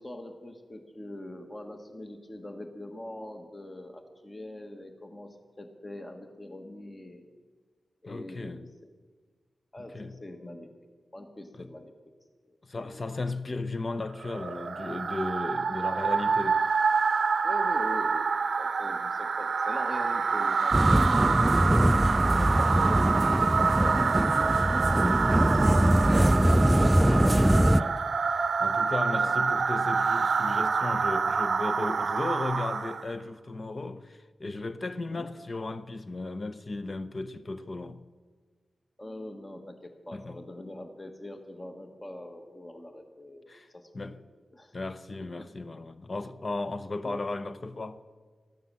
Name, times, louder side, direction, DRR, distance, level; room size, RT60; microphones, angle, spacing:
voice 1, 0.0-7.2 8.0-8.7 9.7-10.7 11.1-11.9 12.4-13.1 15.8-16.2 17.4-18.3 18.6-26.2 29.1-29.6 35.1-35.3 39.0-44.2 44.5-44.8 45.4-45.5 47.0-47.2, left 1 dB, 30° left, 1.5 m, -43 dB
voice 2, 8.1-8.6 9.9-10.1 11.5-11.7 12.6-16.6 26.6-38.0 40.1-40.4 43.5-43.7 43.9-44.2 44.7-48.0, left 2 dB, 45° left, 0.8 m, -35 dB
sound 1, 14.2-33.1, right 5 dB, 70° right, 0.6 m, -27 dB
sound 2, 20.7-27.8, equal, 10° right, 0.4 m, -23 dB
13.5 x 9.4 x 7.5 m
cardioid pair, 50°, 0 cm